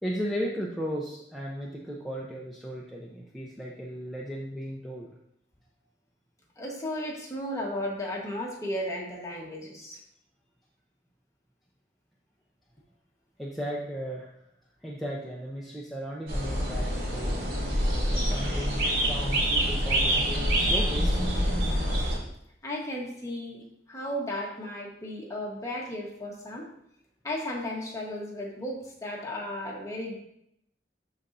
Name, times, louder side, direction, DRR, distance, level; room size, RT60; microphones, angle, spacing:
voice 1, 0.0-5.1 13.4-14.3 14.8-17.4 18.1-21.2, equal, ahead, -5 dB, 0.7 m, -36 dB
voice 2, 6.6-10.0 22.6-26.7 27.2-30.2, left 1 dB, 15° left, -2 dB, 1.2 m, -35 dB
sound 1, 16.3-22.2, equal, 55° right, 2.3 m, -26 dB
12.0 x 4.1 x 2.6 m, 0.76 s
head